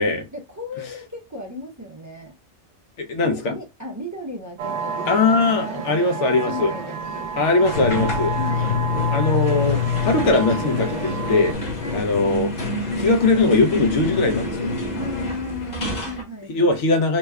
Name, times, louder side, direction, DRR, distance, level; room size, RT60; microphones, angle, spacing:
voice 1, 0.3-2.4 3.2-7.3 8.4-8.7 11.8-12.1 14.9-16.8, left 1 dB, 30° right, 0.3 m, -35 dB
voice 2, 3.0-3.5 5.1-6.7 7.4-8.4 9.1-11.5 11.9-12.5 12.9-14.7 16.5-17.2, left 3 dB, 80° left, 1.1 m, -20 dB
sound 1, 4.6-11.5, right 5 dB, 75° right, 0.9 m, -30 dB
sound 2, 7.6-16.2, left 4 dB, 40° left, 1.0 m, -26 dB
3.2 x 2.1 x 3.4 m
omnidirectional pair, 1.2 m